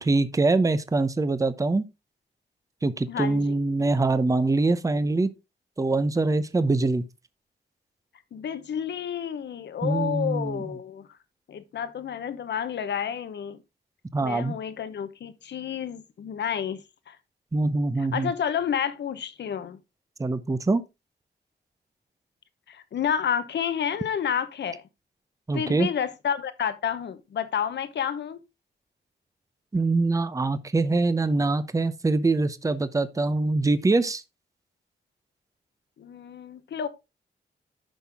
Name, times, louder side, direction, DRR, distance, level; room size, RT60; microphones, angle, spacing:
voice 1, 0.0-1.9 2.8-5.3 5.8-7.0 9.8-10.6 14.1-14.5 17.5-18.3 20.2-20.8 25.5-25.9 29.7-34.2, right 3 dB, 20° right, 0.7 m, -24 dB
voice 2, 3.1-3.5 8.3-11.1 11.5-13.6 14.2-17.2 18.0-19.8 22.7-24.8 25.5-28.4 36.0-36.9, left 8 dB, 80° left, 1.0 m, -30 dB
10.0 x 5.7 x 3.5 m
cardioid pair, 95°, 18 cm